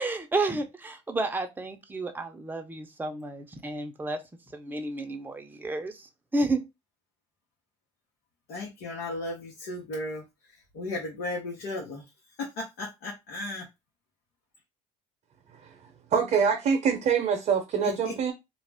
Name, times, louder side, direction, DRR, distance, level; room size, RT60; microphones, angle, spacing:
voice 1, 0.0-4.2 4.5-6.1 6.3-6.6, right 2 dB, 10° right, 0.6 m, -31 dB
voice 2, 8.5-10.2 10.7-12.0 12.4-13.6 17.8-18.1, left 2 dB, 75° left, 0.9 m, -35 dB
voice 3, 16.1-18.3, right 6 dB, 50° right, 0.7 m, -24 dB
2.4 x 2.0 x 3.4 m
supercardioid pair, 75°, 17 cm